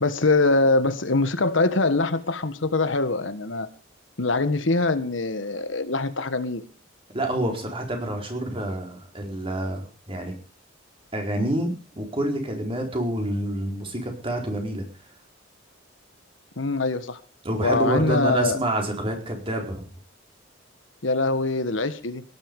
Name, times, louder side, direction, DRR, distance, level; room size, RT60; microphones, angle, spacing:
voice 1, 0.0-3.7 4.2-6.6 16.6-17.2 17.6-18.6 21.0-22.2, left 3 dB, 75° left, 11 dB, 1.5 m, -23 dB
voice 2, 7.1-10.3 11.1-14.9 17.4-19.9, right 1 dB, 30° right, 2 dB, 4.3 m, -28 dB
18.0 x 11.5 x 5.4 m, 0.37 s
head